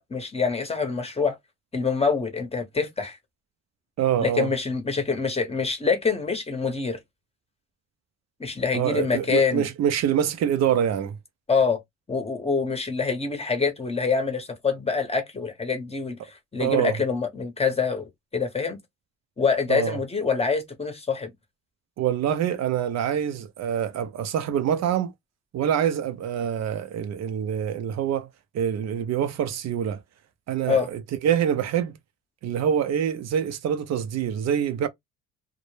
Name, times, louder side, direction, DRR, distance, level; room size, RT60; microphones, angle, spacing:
voice 1, 0.0-1.4 1.7-3.2 4.2-7.0 8.4-9.6 11.5-11.8 12.1-18.8 19.4-21.3 30.7-30.9, left 5 dB, 20° left, 0.7 m, -25 dB
voice 2, 4.0-4.5 8.7-11.1 16.6-17.0 19.7-20.0 22.0-25.1 25.5-28.3 28.5-30.0 30.5-32.0 32.4-34.9, right 9 dB, 60° right, 0.4 m, -25 dB
2.1 x 2.0 x 3.0 m
cardioid pair, 90°, 30 cm